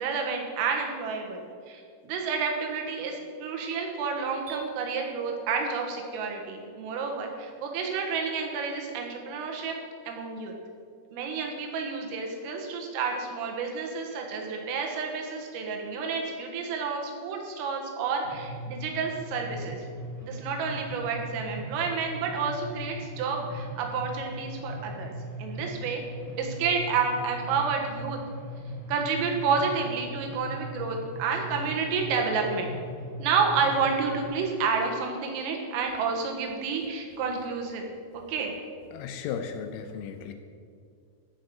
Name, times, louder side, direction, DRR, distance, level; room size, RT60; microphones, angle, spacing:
voice 1, 0.0-1.4 1.7-9.8 10.1-10.5 11.1-19.9 20.2-25.1 25.4-26.0 26.4-28.2 28.9-32.7 33.2-37.9 38.3-38.5, right 5 dB, 85° right, 1 dB, 3.9 m, -30 dB
sound 1, 4.5-6.4, right 3 dB, 40° right, 2.4 m, -42 dB
sound 2, 18.2-34.2, equal, 15° right, 1.9 m, -39 dB
voice 2, 38.9-40.3, left 7 dB, 80° left, 7 dB, 3.0 m, -35 dB
14.5 x 5.3 x 6.5 m, 2.2 s
omnidirectional pair, 5.9 m